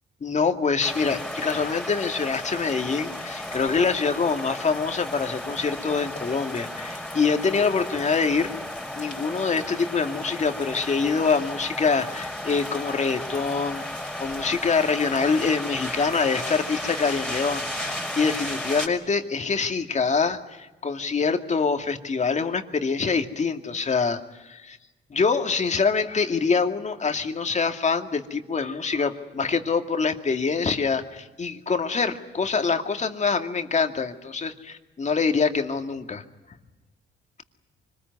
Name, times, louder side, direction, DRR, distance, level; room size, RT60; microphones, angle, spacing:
voice 1, 0.2-8.5 9.0-24.8 25.1-36.2, left 5 dB, 35° left, 6 dB, 2.3 m, -25 dB
sound 1, 0.8-18.9, left 1 dB, 5° left, 5.9 m, -34 dB
25.5 x 20.5 x 9.6 m, 1.1 s
cardioid pair, 90°, 20 cm